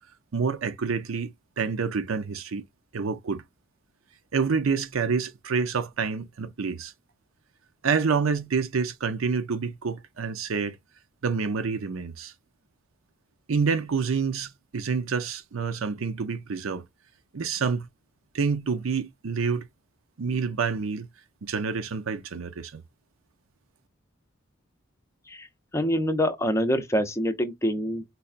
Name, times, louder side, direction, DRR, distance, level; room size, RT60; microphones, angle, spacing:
voice 1, 0.3-2.6 2.9-3.4 4.3-6.9 7.8-10.8 11.2-12.3 13.5-16.8 17.3-17.9 18.3-19.7 20.2-21.1 21.4-22.8, right 5 dB, 80° right, 0.6 m, -28 dB
voice 2, 25.7-28.0, equal, 15° left, 0.5 m, -25 dB
4.1 x 2.2 x 2.4 m
head